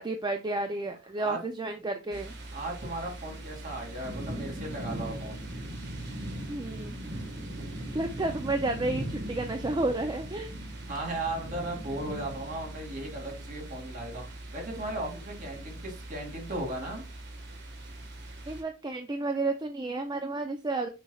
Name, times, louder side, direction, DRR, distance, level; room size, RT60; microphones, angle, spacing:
voice 1, 0.0-2.3 6.5-7.0 7.7-10.5 18.5-20.9, right 2 dB, 20° right, 0.6 m, -31 dB
sound 1, 2.1-18.6, right 1 dB, 60° right, 1.6 m, -40 dB
voice 2, 2.5-5.5 10.9-17.0, right 2 dB, 45° right, 2.6 m, -36 dB
7.0 x 5.6 x 2.4 m
head